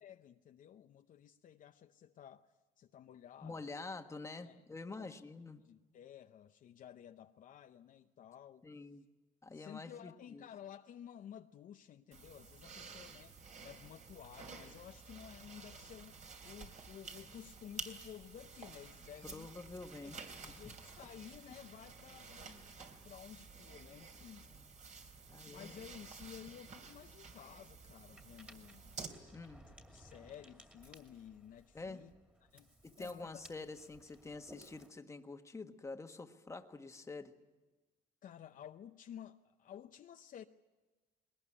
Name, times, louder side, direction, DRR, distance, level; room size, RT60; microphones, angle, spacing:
voice 1, 0.0-3.8 4.4-4.6 5.0-5.2 5.6-8.7 9.5-19.5 20.0-22.8 23.0-24.5 25.5-29.0 29.6-32.1 32.4-32.7 33.0-33.4 38.2-40.5, left 9 dB, 50° left, 0.7 m, -54 dB
voice 2, 3.4-5.6 8.6-9.0 9.4-10.4 19.3-20.3 24.5-24.7 25.3-25.7 29.3-29.6 31.7-32.0 32.8-37.3, left 3 dB, 15° left, 1.4 m, -47 dB
sound 1, 12.1-29.1, right 5 dB, 45° right, 3.2 m, -52 dB
Ocean, 28.1-34.9, equal, 10° right, 2.5 m, -60 dB
20.5 x 19.5 x 9.9 m
cardioid pair, 110°, 17 cm